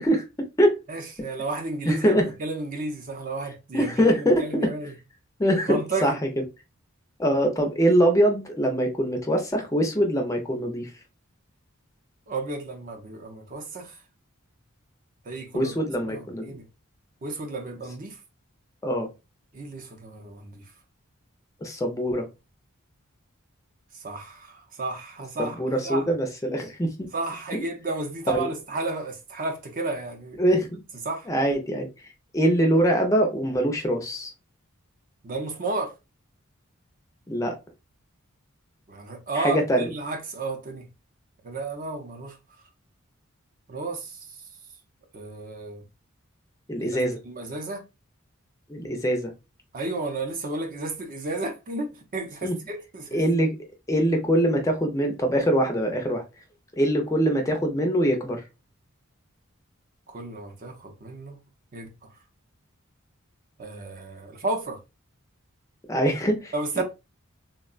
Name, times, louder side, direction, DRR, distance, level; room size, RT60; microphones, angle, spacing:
voice 1, 0.0-0.8 1.9-2.3 3.7-4.7 5.4-6.4 7.2-10.9 15.5-16.5 18.8-19.1 21.6-22.3 25.4-26.9 28.3-28.5 30.4-30.8 31.3-31.9 32.3-34.3 37.3-37.6 39.3-39.9 46.7-47.2 48.7-49.3 52.4-52.6 53.1-53.6 53.9-56.2 56.8-58.4 65.9-66.8, equal, 15° left, 0.4 m, -23 dB
voice 2, 0.9-4.9 5.7-6.2 12.3-14.0 15.3-15.7 16.0-16.6 17.2-18.2 19.5-20.6 23.9-26.1 27.1-30.4 31.0-31.3 35.2-35.9 38.9-40.9 41.4-42.4 43.7-44.2 45.1-45.9 46.8-46.9 47.2-47.8 49.7-53.2 60.1-61.4 61.7-61.9 63.6-64.8 66.5-66.8, right 2 dB, 40° right, 0.6 m, -32 dB
3.6 x 2.1 x 2.3 m
head